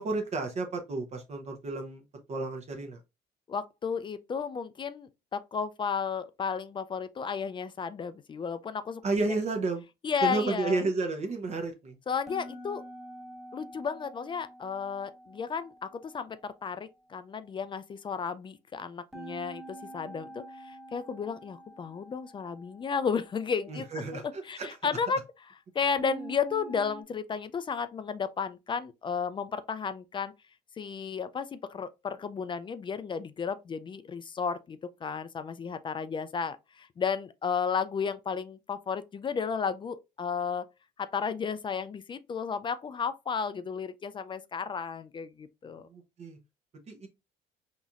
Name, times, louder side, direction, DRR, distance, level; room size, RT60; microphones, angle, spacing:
voice 1, 0.0-2.0 2.3-3.0 9.0-9.8 10.2-12.0 23.7-24.7 45.8-46.4 46.9-47.1, right 3 dB, 40° right, 0.8 m, -32 dB
voice 2, 3.5-9.0 10.0-10.8 12.1-12.8 13.5-25.3 25.7-30.3 30.8-40.7 41.0-45.9, left 6 dB, 30° left, 0.3 m, -33 dB
sound 1, 12.3-16.4 19.1-23.3 26.0-27.0, right 2 dB, ahead, 1.5 m, -46 dB
3.9 x 3.0 x 2.4 m
cardioid pair, 110°, 17 cm